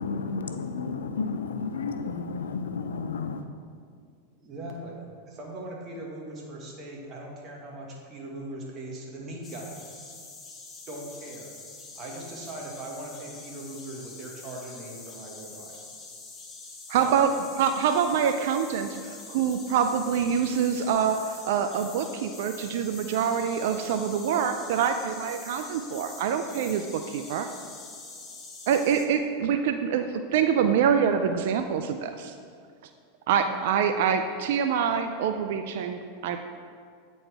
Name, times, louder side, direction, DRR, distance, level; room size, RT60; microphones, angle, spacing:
voice 1, 0.0-3.4, left 4 dB, 85° left, 8 dB, 0.4 m, -32 dB
voice 2, 4.4-5.0 5.3-9.8 10.9-11.5 11.9-15.8 17.0-17.1, right 1 dB, 35° right, -2 dB, 1.5 m, -40 dB
sound 1, 9.4-29.1, left 3 dB, 25° left, 1.0 m, -45 dB
voice 3, 16.9-27.5 28.7-32.4 33.3-36.4, right 7 dB, 65° right, 7 dB, 0.3 m, -25 dB
8.9 x 4.2 x 3.4 m, 2.1 s
hypercardioid pair, 105°, 0 cm